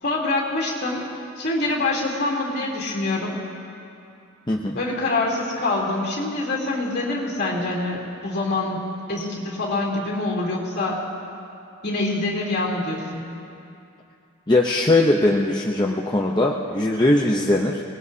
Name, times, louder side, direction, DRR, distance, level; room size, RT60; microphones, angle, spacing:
voice 1, 0.0-1.0 1.4-3.4 4.7-11.0 11.8-13.2, left 2 dB, 50° left, -3 dB, 3.3 m, -25 dB
voice 2, 4.5-4.8 14.5-17.8, left 2 dB, 20° left, -1 dB, 0.7 m, -20 dB
25.5 x 19.5 x 2.8 m, 2.6 s
head